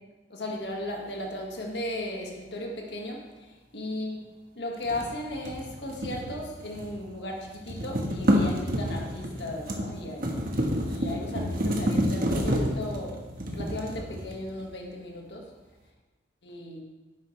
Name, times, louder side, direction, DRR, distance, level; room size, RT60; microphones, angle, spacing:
voice 1, 0.3-4.2 4.5-10.4 10.6-13.2 13.5-15.5 16.4-16.8, left 1 dB, 70° left, 0 dB, 1.8 m, -36 dB
sound 1, 4.8-7.1 7.3-14.6, equal, 55° right, 1.4 m, -29 dB
10.5 x 8.4 x 3.3 m, 1.2 s
head